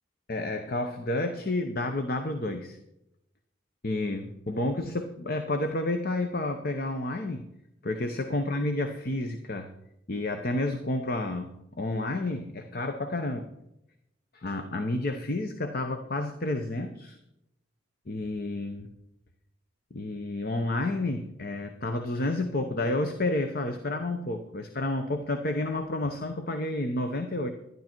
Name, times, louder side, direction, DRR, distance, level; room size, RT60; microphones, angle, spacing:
voice 1, 0.3-2.8 3.8-7.4 7.8-9.7 10.1-13.5 14.3-17.2 18.1-18.9 19.9-27.5, left 2 dB, 50° left, 6 dB, 0.9 m, -30 dB
12.5 x 11.0 x 4.6 m, 0.85 s
head